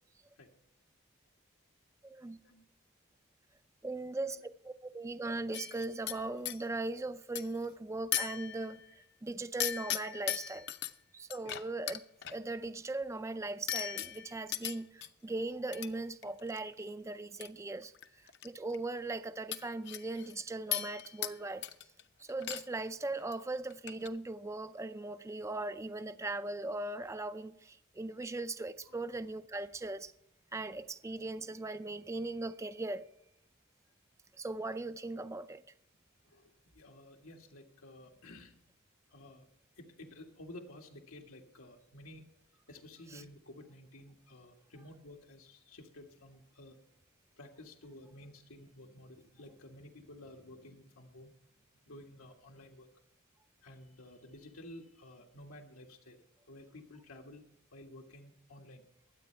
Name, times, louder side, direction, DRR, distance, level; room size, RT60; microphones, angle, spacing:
voice 1, 2.0-2.4 3.8-4.4 4.6-8.8 9.2-10.7 11.1-12.0 12.3-17.9 18.4-21.6 22.2-30.1 30.5-33.0 34.4-35.6 43.1-43.2, right 2 dB, 15° right, 0.3 m, -39 dB
Indoor Wine Glass Utensils Clink Various, 5.5-6.6 7.4-7.7 8.1-8.9 9.6-10.9 11.3-12.4 13.7-15.1 15.7-15.9 16.2-16.6 17.4-17.5 17.8-18.5 18.7-18.8 19.5-20.4 20.7-21.4 21.6-22.0 22.3-22.9 23.1-23.4 23.7-24.1, left 11 dB, 55° left, 0.6 m, -38 dB
voice 2, 36.2-38.6 39.1-39.5 39.8-42.2 42.7-46.8 47.4-51.3 51.9-52.9 53.6-56.2 56.5-58.8, left 1 dB, 85° left, 1.7 m, -53 dB
23.0 x 8.4 x 3.3 m
head